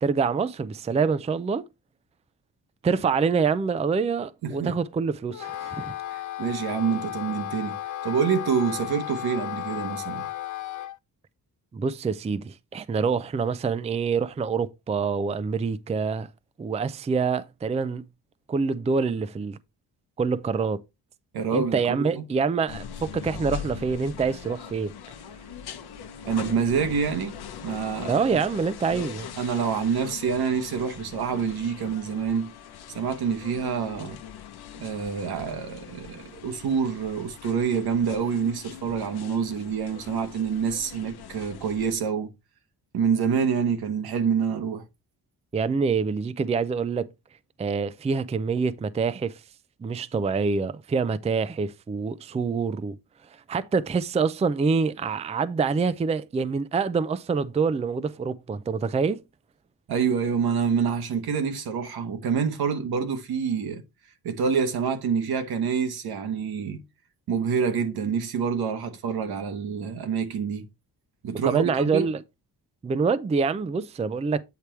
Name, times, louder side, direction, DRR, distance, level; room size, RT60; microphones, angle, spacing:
voice 1, 0.0-1.6 2.8-5.9 11.7-16.3 16.6-18.0 18.5-19.6 20.2-20.8 21.5-24.9 28.1-29.3 45.5-47.1 47.6-49.3 49.8-52.9 53.5-59.2 71.4-72.2 72.8-74.4, right 5 dB, 20° right, 0.4 m, -26 dB
voice 2, 4.4-4.8 6.1-7.8 8.0-10.3 21.3-22.2 26.2-28.1 29.4-32.5 32.9-34.2 34.8-42.3 42.9-44.8 59.9-63.8 64.2-66.8 67.3-70.7 71.2-72.1, right 6 dB, 80° right, 1.2 m, -27 dB
Wind instrument woodwind instrument, 5.3-11.0, left 12 dB, 55° left, 0.5 m, -34 dB
sound 1, 22.7-42.0, left 8 dB, 85° left, 0.8 m, -41 dB
8.4 x 3.3 x 4.4 m
cardioid pair, 110°, 37 cm